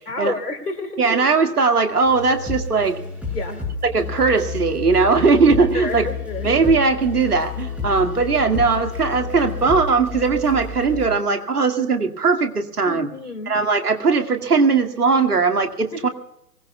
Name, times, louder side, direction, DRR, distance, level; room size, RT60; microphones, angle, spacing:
voice 1, 0.1-1.0 3.3-3.6 5.7-6.5 12.8-13.5 15.9-16.0, left 3 dB, 75° left, 6 dB, 3.9 m, -29 dB
voice 2, 1.0-3.0 3.9-6.1 6.4-13.1 13.5-16.1, right 4 dB, 70° right, 6 dB, 2.2 m, -19 dB
sound 1, 2.0-11.1, left 5 dB, 5° right, 7.6 m, -30 dB
24.0 x 20.0 x 2.3 m, 0.78 s
figure-of-eight pair, 130°, 47 cm